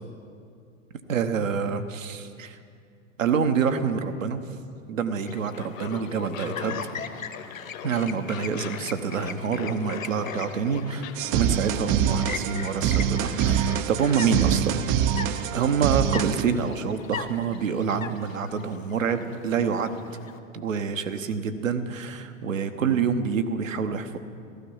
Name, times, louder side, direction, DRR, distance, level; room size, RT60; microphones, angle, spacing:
voice 1, 1.1-2.5 3.2-4.4 4.9-6.8 7.8-11.1 11.3-14.8 15.5-20.0 20.5-24.2, right 6 dB, 75° right, 8 dB, 1.1 m, -27 dB
Chirp tweet, 5.2-20.4, left 6 dB, 85° left, 1.0 m, -40 dB
Laughter, 5.5-13.8, left 10 dB, 45° left, 1.2 m, -40 dB
sound 1, 11.2-16.4, right 10 dB, 35° right, 0.5 m, -25 dB
15.5 x 13.5 x 5.6 m, 2.4 s
figure-of-eight pair, 95°, 39 cm